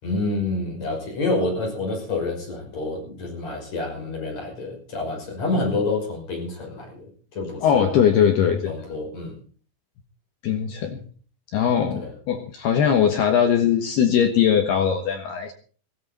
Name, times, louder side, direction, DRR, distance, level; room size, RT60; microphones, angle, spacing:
voice 1, 0.0-7.9 8.6-9.4 11.9-12.1, left 2 dB, 35° left, 0 dB, 6.6 m, -28 dB
voice 2, 7.6-8.8 10.4-11.1 11.5-15.5, left 8 dB, 70° left, 6 dB, 2.6 m, -20 dB
17.5 x 16.0 x 4.1 m, 0.42 s
omnidirectional pair, 5.9 m